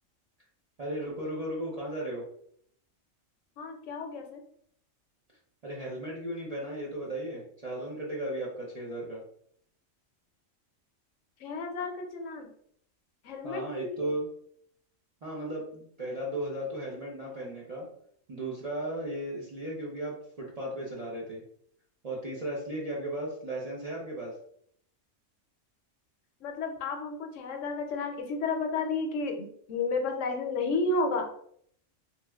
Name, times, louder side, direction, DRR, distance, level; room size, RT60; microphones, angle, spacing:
voice 1, 0.8-2.2 5.6-9.2 13.4-14.3 15.2-17.9 18.3-21.4 22.0-24.3, right 1 dB, 45° right, -5 dB, 0.5 m, -35 dB
voice 2, 3.6-4.4 11.4-12.5 13.2-14.1 26.4-31.3, left 3 dB, 75° left, 4 dB, 0.9 m, -32 dB
3.0 x 2.9 x 2.2 m, 0.66 s
omnidirectional pair, 1.3 m